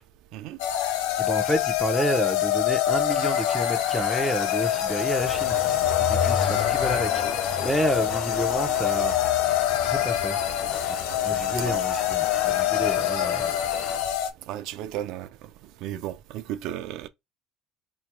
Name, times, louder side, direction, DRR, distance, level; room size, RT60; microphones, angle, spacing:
sound 1, 0.6-14.3, left 12 dB, 90° left, 0.6 m, -25 dB
voice 1, 1.2-5.6 6.1-7.2 7.6-9.1 9.8-10.4 10.9-11.0 11.2-13.5, equal, ahead, 0.9 m, -29 dB
sound 2, 2.9-14.0, left 4 dB, 50° left, 1.3 m, -38 dB
Engine, 5.2-14.1, left 4 dB, 65° left, 1.6 m, -37 dB
voice 2, 14.5-15.5 15.8-17.1, right 12 dB, 75° right, 0.5 m, -34 dB
4.5 x 2.8 x 2.3 m
cardioid pair, 110°, 0 cm